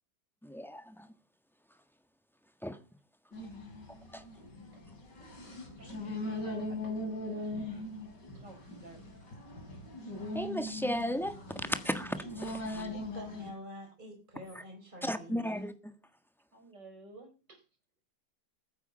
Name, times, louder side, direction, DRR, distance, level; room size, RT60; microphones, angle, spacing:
voice 1, 0.4-1.1 2.6-2.8 4.1-4.2 10.3-12.9 15.0-15.7, equal, ahead, 1.3 m, -35 dB
sound 1, 3.3-13.5, left 1 dB, 90° left, 4.3 m, -40 dB
voice 2, 5.8-7.4 8.3-9.0 16.5-17.6, right 2 dB, 90° right, 4.9 m, -54 dB
voice 3, 12.8-15.6, equal, 25° right, 4.6 m, -47 dB
21.0 x 9.8 x 5.6 m
omnidirectional pair, 1.8 m